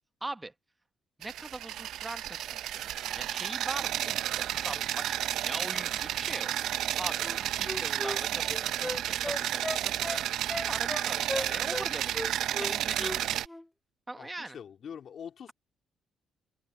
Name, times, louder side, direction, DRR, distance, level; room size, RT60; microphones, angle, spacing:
voice 1, 0.2-0.5 1.2-2.9 3.2-7.3 7.6-10.2 10.6-13.4 14.1-14.6, right 2 dB, 15° right, 1.0 m, -42 dB
sound 1, 1.2-13.5, right 12 dB, 80° right, 0.5 m, -32 dB
Wind instrument woodwind instrument, 7.2-11.9 12.1-13.2 13.5-13.7, left 1 dB, 10° left, 0.5 m, -36 dB
voice 2, 14.2-15.5, left 8 dB, 60° left, 2.7 m, -44 dB
cardioid pair, 90°, 0 cm